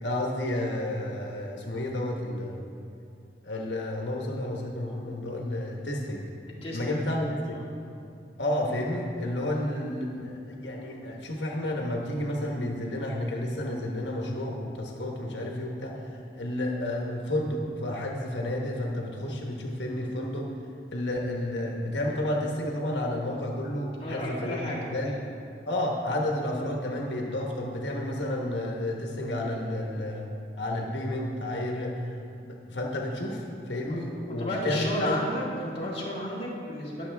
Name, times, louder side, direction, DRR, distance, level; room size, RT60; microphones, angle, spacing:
voice 1, 0.0-2.7 3.4-6.2 6.7-7.6 8.4-20.5 20.9-25.1 25.7-32.1 32.4-35.2, left 1 dB, 85° left, -1 dB, 1.3 m, -31 dB
voice 2, 6.6-7.0 7.3-7.7 24.0-25.3 33.9-34.0 34.4-37.1, left 1 dB, 30° left, -6 dB, 2.2 m, -33 dB
20.5 x 7.1 x 3.5 m, 2.5 s
head